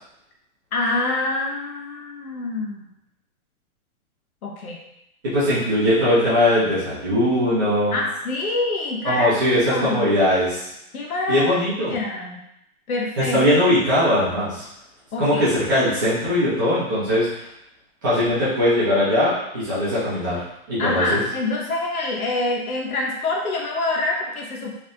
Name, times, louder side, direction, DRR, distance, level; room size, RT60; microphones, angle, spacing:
voice 1, 0.7-2.9 4.4-4.8 7.9-9.3 9.7-10.2 10.9-11.5 11.9-12.4 12.9-13.4 15.1-15.5 20.8-24.7, left 2 dB, 80° left, -1 dB, 1.1 m, -26 dB
voice 2, 5.2-7.9 9.0-10.7 11.3-12.0 13.2-14.6 15.2-17.4 18.0-21.2, left 1 dB, 15° right, -12 dB, 0.8 m, -20 dB
3.4 x 3.3 x 2.6 m, 0.81 s
hypercardioid pair, 175°, 43 cm